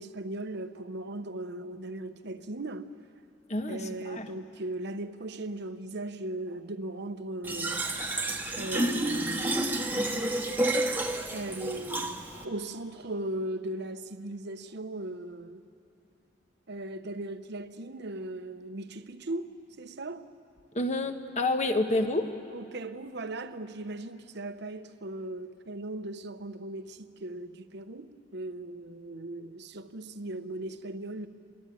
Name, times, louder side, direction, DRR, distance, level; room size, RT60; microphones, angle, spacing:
voice 1, 0.0-2.9 3.7-7.9 8.5-9.6 11.3-15.6 16.7-19.5 19.8-20.2 22.5-31.3, right 1 dB, 60° right, 1.0 m, -38 dB
voice 2, 3.5-4.3 20.7-22.3, left 2 dB, 40° left, 1.4 m, -28 dB
Fill (with liquid), 7.4-12.4, right 1 dB, 10° right, 1.3 m, -30 dB
24.5 x 22.0 x 9.2 m
head